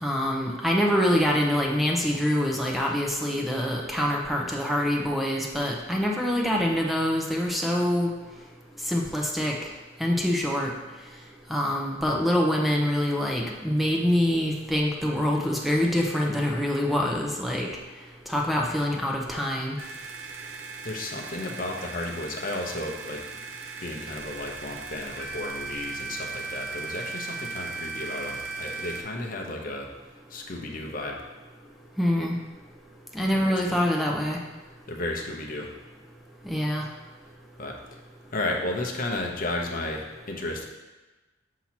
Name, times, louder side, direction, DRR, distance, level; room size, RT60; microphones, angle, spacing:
voice 1, 0.0-8.1 8.9-9.5 10.0-10.7 11.5-17.7 18.3-19.8 32.0-32.3 33.1-34.4 36.4-36.8, equal, ahead, -1 dB, 0.7 m, -25 dB
sound 1, 19.8-29.0, right 4 dB, 70° right, 0.7 m, -37 dB
voice 2, 20.8-23.2 23.8-29.9 30.3-31.2 33.3-33.7 34.9-35.7 37.6-37.8 38.3-40.7, left 2 dB, 45° left, 1 dB, 0.8 m, -33 dB
7.1 x 2.8 x 5.9 m, 1.2 s
head